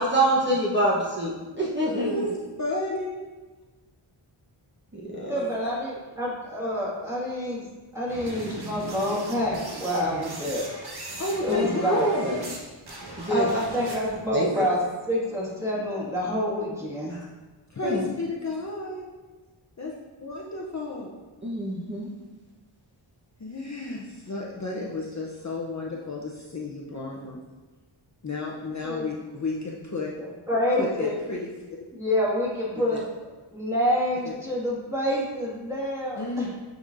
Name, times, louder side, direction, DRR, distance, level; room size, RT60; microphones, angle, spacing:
voice 1, 0.0-2.1 4.9-5.3 11.5-12.4 13.2-13.5 14.3-14.7 17.8-18.0 21.4-22.1, right 1 dB, 25° right, -7 dB, 1.0 m, -25 dB
voice 2, 1.7-3.3 5.1-5.5 11.2-12.1 17.7-19.1 19.8-19.9 20.2-21.2 23.4-27.4 28.2-30.1 30.8-31.5 32.9-33.0 34.2-34.3 36.2-36.5, left 2 dB, 35° left, -3 dB, 0.7 m, -32 dB
voice 3, 5.3-7.7 7.9-10.7 11.4-12.1 13.3-17.1 28.8-29.1 30.5-31.2 31.9-33.0 33.5-36.5, left 1 dB, 5° right, -6 dB, 1.8 m, -27 dB
sound 1, 8.1-12.6 12.8-14.2, right 2 dB, 50° right, 1.1 m, -39 dB
8.9 x 4.1 x 2.6 m, 1.3 s
wide cardioid pair, 90°, 49 cm